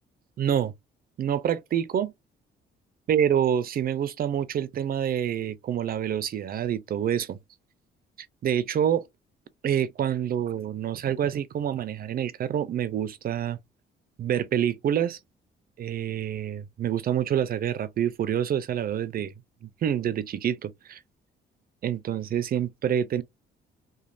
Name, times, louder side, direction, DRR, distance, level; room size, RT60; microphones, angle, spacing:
voice 1, 0.4-0.7 1.2-2.1 3.1-7.4 8.4-9.0 9.6-13.6 14.2-15.2 15.8-19.3 19.6-21.0 21.8-23.2, right 9 dB, 50° right, 0.4 m, -27 dB
3.1 x 2.2 x 2.5 m
cardioid pair, 90°, 20 cm